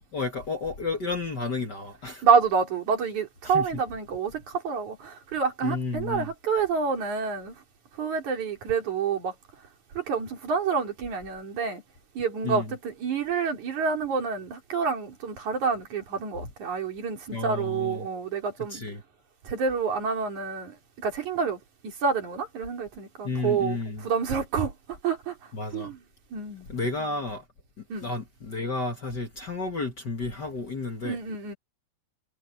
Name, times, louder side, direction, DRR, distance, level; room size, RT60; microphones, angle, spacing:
voice 1, 0.1-2.2 3.4-3.7 5.6-6.3 12.4-12.7 17.3-18.1 18.7-19.0 23.2-24.1 25.5-25.9 26.7-27.4 28.0-31.2, left 3 dB, 40° left, 1.6 m, -32 dB
voice 2, 2.2-7.6 8.0-9.3 9.9-11.8 12.1-18.8 19.4-24.7 25.0-25.3 25.7-26.0 26.3-26.7 27.9-28.1 31.0-31.5, right 5 dB, 50° right, 5.0 m, -28 dB
omnidirectional pair, 4.4 m